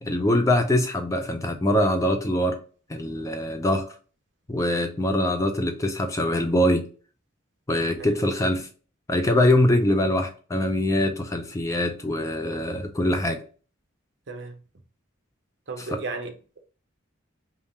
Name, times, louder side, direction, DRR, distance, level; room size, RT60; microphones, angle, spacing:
voice 1, 0.0-2.6 2.9-3.9 4.5-6.8 7.7-8.7 9.1-13.4 15.9-16.0, left 1 dB, 15° left, 0.4 m, -23 dB
voice 2, 14.3-14.6 15.7-16.3, right 3 dB, 60° right, 0.7 m, -34 dB
3.5 x 2.4 x 4.1 m
head